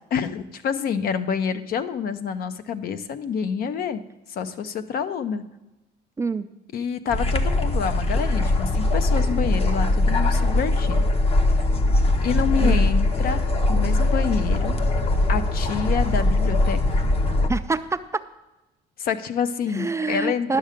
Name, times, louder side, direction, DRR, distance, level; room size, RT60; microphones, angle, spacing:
voice 1, 0.1-4.0 4.3-5.4 6.7-11.0 12.2-14.8 15.3-17.0 19.0-20.6, left 7 dB, 60° left, 11 dB, 0.7 m, -27 dB
sound 1, 7.1-17.5, left 2 dB, 35° left, 0.9 m, -21 dB
voice 2, 17.5-18.2 19.7-20.6, right 4 dB, 15° right, 10 dB, 0.4 m, -26 dB
11.0 x 6.6 x 5.1 m, 1.0 s
cardioid pair, 110°, 17 cm